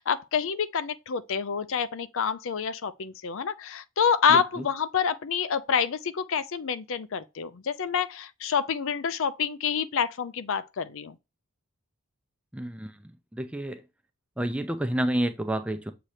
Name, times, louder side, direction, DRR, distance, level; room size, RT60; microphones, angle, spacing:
voice 1, 0.0-11.1, left 7 dB, 60° left, 0.5 m, -27 dB
voice 2, 4.3-4.7 12.5-13.9 14.4-15.9, right 1 dB, 5° right, 0.5 m, -30 dB
7.5 x 2.9 x 4.9 m
head